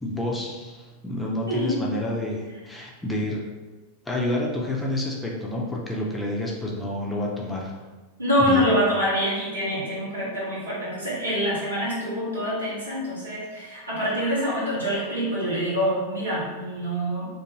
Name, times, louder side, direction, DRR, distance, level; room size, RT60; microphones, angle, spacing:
voice 1, 0.0-3.4 4.1-7.7 8.5-8.7, left 1 dB, 10° left, -3 dB, 0.5 m, -29 dB
voice 2, 1.5-1.8 8.2-17.3, equal, 80° right, -8 dB, 1.3 m, -25 dB
2.6 x 2.5 x 3.0 m, 1.2 s
figure-of-eight pair, 90°, 0 cm